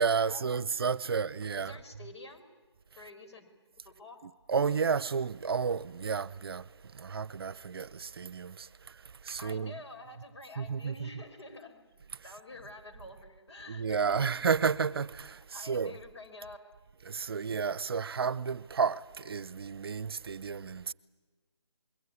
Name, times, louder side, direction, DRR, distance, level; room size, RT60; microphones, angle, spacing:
voice 1, 0.0-1.8 4.5-6.6 7.0-8.5 9.3-9.7 10.6-11.2 13.7-15.9 17.1-20.9, right 6 dB, 55° right, 0.7 m, -31 dB
voice 2, 1.6-2.5 3.0-3.5 3.8-4.2 9.4-11.8 12.2-14.3 15.5-16.6, left 2 dB, 65° left, 5.4 m, -48 dB
26.5 x 22.0 x 9.7 m
figure-of-eight pair, 160°, 15 cm